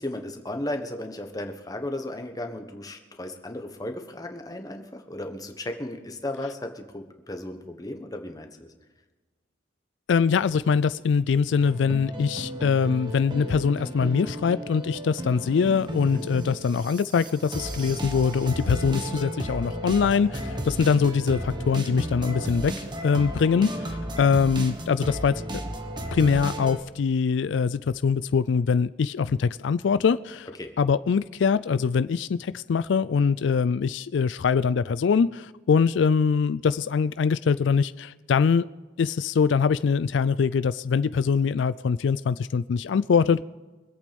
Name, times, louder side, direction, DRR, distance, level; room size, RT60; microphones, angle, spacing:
voice 1, 0.0-8.7 16.1-16.2 30.6-30.7, left 1 dB, 20° left, 5 dB, 1.3 m, -35 dB
voice 2, 10.1-25.6 26.1-30.5 30.8-38.7 39.0-43.4, left 6 dB, 75° left, 16 dB, 0.4 m, -23 dB
sound 1, 11.6-26.8, equal, 25° right, 1.4 m, -34 dB
24.5 x 8.4 x 5.2 m, 1.3 s
head